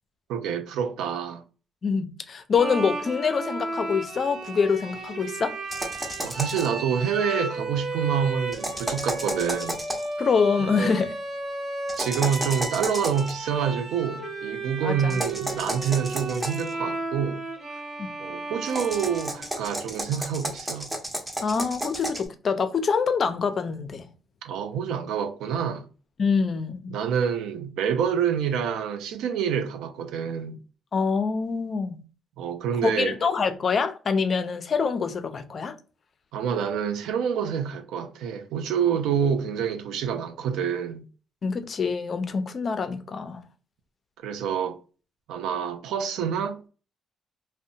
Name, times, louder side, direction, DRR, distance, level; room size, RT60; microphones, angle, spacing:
voice 1, 0.3-1.4 6.2-9.8 10.6-11.1 11.9-17.4 18.2-20.9 24.4-25.9 26.9-30.6 32.4-33.1 36.3-41.1 44.2-44.8 45.3-46.6, right 7 dB, 90° right, 0.4 m, -27 dB
voice 2, 1.8-5.5 10.2-11.1 14.8-15.2 18.0-18.1 21.4-24.1 26.2-27.0 30.9-32.0 32.8-35.7 41.4-43.4, left 5 dB, 50° left, 0.4 m, -25 dB
Bowed string instrument, 2.6-20.0, right 2 dB, 50° right, 1.2 m, -34 dB
sound 1, 5.7-6.8 8.5-10.1 11.9-13.3 15.1-16.7 18.6-22.3, right 1 dB, 10° right, 0.8 m, -32 dB
2.6 x 2.1 x 2.6 m
cardioid pair, 90°, 0 cm